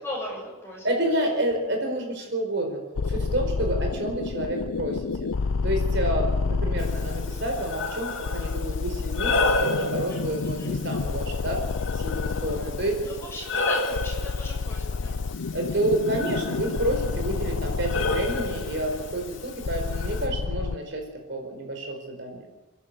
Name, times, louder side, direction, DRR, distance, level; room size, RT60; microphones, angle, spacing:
voice 1, 0.0-0.8 9.9-10.7 13.0-15.2 17.9-18.1, left 1 dB, 10° left, -3 dB, 7.2 m, -37 dB
voice 2, 0.8-2.8 3.1-5.3 5.6-11.6 11.9-13.0 15.5-21.0 21.3-22.5, right 1 dB, 55° right, 3 dB, 4.8 m, -29 dB
sound 1, 3.0-20.8, left 4 dB, 85° left, 0.6 m, -30 dB
Breathing, 6.8-20.3, left 3 dB, 60° left, 2.8 m, -32 dB
29.0 x 11.0 x 8.1 m, 1.1 s
head